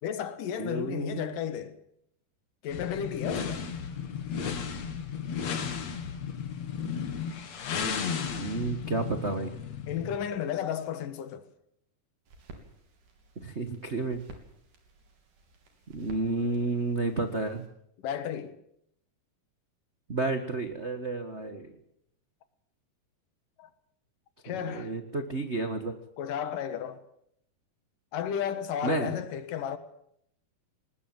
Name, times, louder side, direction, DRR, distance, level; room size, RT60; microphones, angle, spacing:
voice 1, 0.0-1.8 2.6-3.7 9.9-11.5 18.0-18.6 23.6-23.7 24.4-24.9 26.2-27.0 28.1-29.8, left 9 dB, 75° left, 3.1 m, -33 dB
voice 2, 0.6-1.4 8.3-9.5 13.4-14.2 15.9-17.6 20.1-21.7 24.5-26.0 28.8-29.1, right 3 dB, 50° right, 0.8 m, -31 dB
sound 1, 2.7-10.3, left 6 dB, 55° left, 2.9 m, -34 dB
sound 2, 12.3-17.7, right 2 dB, 70° right, 4.8 m, -53 dB
20.0 x 20.0 x 7.9 m
omnidirectional pair, 3.8 m